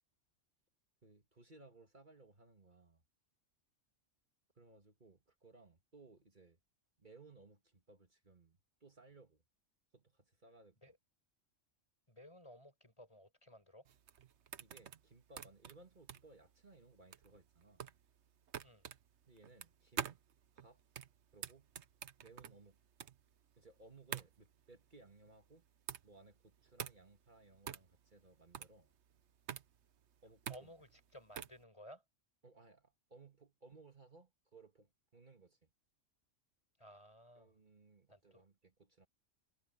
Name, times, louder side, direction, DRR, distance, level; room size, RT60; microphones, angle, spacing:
voice 1, 1.0-3.0 4.6-6.6 7.0-9.4 9.9-10.8 14.6-17.8 19.3-20.2 20.5-20.8 21.3-21.7 22.2-22.8 23.6-25.7 26.0-28.9 30.2-30.7 32.4-35.7 37.4-39.1, right 3 dB, 40° right, 2.0 m, -62 dB
voice 2, 12.1-13.9 18.6-18.9 30.5-32.0 36.8-37.6 38.1-38.4, equal, 25° left, 5.3 m, -57 dB
sound 1, 13.9-31.6, right 8 dB, 65° right, 1.1 m, -48 dB
omnidirectional pair, 1.3 m